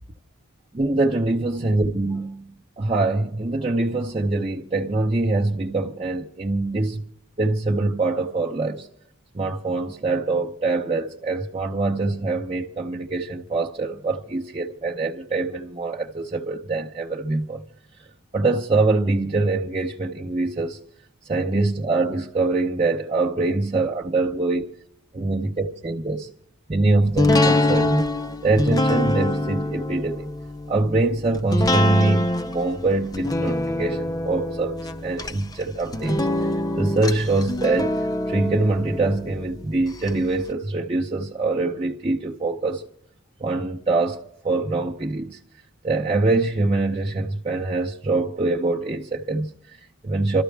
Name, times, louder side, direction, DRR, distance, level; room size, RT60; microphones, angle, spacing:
voice 1, 0.7-7.0 7.4-8.9 9.3-17.6 18.3-20.8 21.2-24.7 25.1-26.3 26.7-28.1 28.4-30.3 30.7-34.8 35.0-36.5 36.8-38.0 38.3-42.8 43.4-45.4 45.8-50.4, right 2 dB, 25° right, 0.7 m, -24 dB
sound 1, 27.2-40.1 40.5-40.6, left 1 dB, 20° left, 0.5 m, -25 dB
26.5 x 13.5 x 3.4 m
head